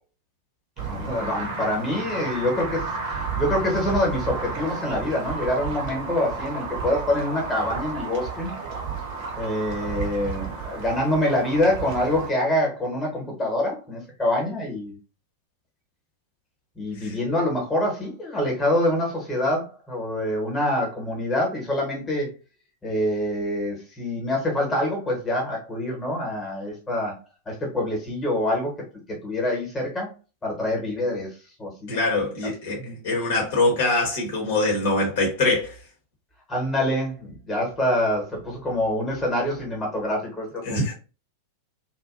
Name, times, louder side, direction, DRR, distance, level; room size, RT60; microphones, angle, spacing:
sound 1, 0.8-12.3, right 5 dB, 45° right, 0.7 m, -32 dB
voice 1, 0.9-8.5 9.4-14.9 16.8-22.3 22.8-27.1 27.5-28.7 29.2-30.1 30.4-31.3 31.6-32.0 32.7-33.0 36.5-40.8, left 1 dB, 15° left, 1.1 m, -25 dB
voice 2, 31.9-35.8 40.6-40.9, left 2 dB, 55° left, 1.0 m, -24 dB
2.6 x 2.2 x 2.4 m
figure-of-eight pair, 90°, 0 cm